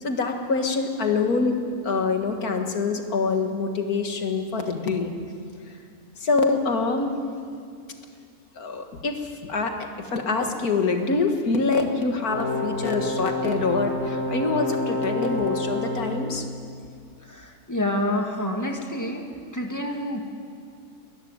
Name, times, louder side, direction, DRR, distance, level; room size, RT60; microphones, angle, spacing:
voice 1, 0.0-1.6 1.8-5.1 6.2-7.2 8.6-9.8 10.1-16.5, left 4 dB, 90° left, 4 dB, 2.3 m, -25 dB
sound 1, 12.3-16.2, left 1 dB, 60° left, 3.8 m, -28 dB
voice 2, 17.3-19.3 19.5-20.2, left 1 dB, 10° left, 2 dB, 2.0 m, -28 dB
22.5 x 14.0 x 9.6 m, 2.3 s
omnidirectional pair, 1.5 m